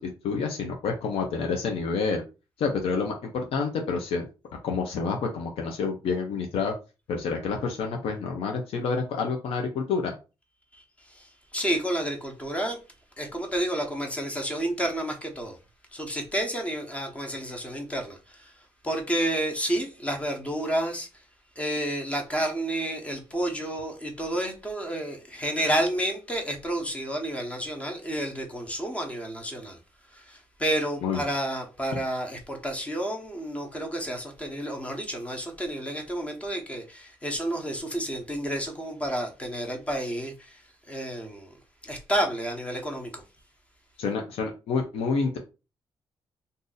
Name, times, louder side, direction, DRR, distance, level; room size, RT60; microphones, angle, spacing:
voice 1, 0.0-2.2 2.6-4.3 4.6-6.7 7.1-10.2 31.0-31.2 44.0-45.4, left 4 dB, 85° left, 0.6 m, -28 dB
voice 2, 11.1-12.8 13.2-15.6 15.9-18.5 18.8-21.1 21.6-29.8 30.1-40.6 40.9-41.5 41.8-43.2, right 1 dB, 15° left, 0.9 m, -30 dB
2.6 x 2.6 x 3.9 m
cardioid pair, 120°, 10 cm